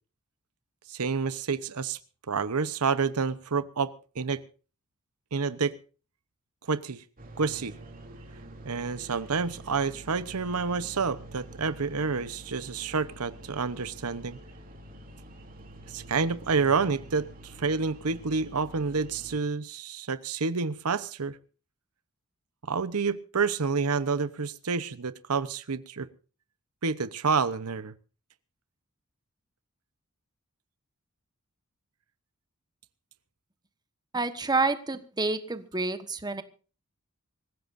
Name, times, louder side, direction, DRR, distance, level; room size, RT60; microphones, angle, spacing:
voice 1, 0.9-2.0 2.3-4.4 5.3-5.7 6.7-7.0 7.4-7.7 8.6-14.4 15.9-17.3 17.6-21.4 22.7-26.1 26.8-27.9, right 5 dB, 80° right, 14 dB, 0.9 m, -29 dB
sound 1, 7.2-19.4, right 1 dB, 40° right, 3.0 m, -47 dB
voice 2, 34.1-36.4, right 3 dB, 20° right, 10 dB, 1.4 m, -28 dB
25.5 x 15.5 x 2.6 m, 0.36 s
head